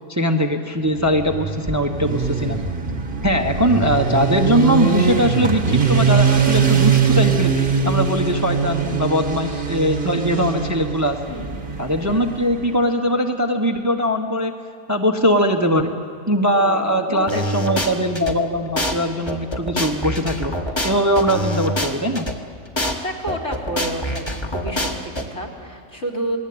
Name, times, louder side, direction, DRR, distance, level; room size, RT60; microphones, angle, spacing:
voice 1, 0.1-2.6 3.2-11.2 11.8-14.5 14.9-15.9 16.3-20.6 20.8-22.3, equal, 15° right, 3 dB, 1.2 m, -21 dB
Motorcycle, 1.0-12.7, right 6 dB, 40° right, 1.6 m, -21 dB
voice 2, 11.3-11.7 16.5-17.9 22.9-26.4, right 1 dB, 55° left, -1 dB, 4.0 m, -31 dB
sound 1, 17.3-18.3 18.8-18.9 19.3-22.3 22.8-22.9 23.3-25.2, left 1 dB, 20° left, 1.9 m, -25 dB
29.0 x 20.5 x 8.7 m, 2.5 s
omnidirectional pair, 1.4 m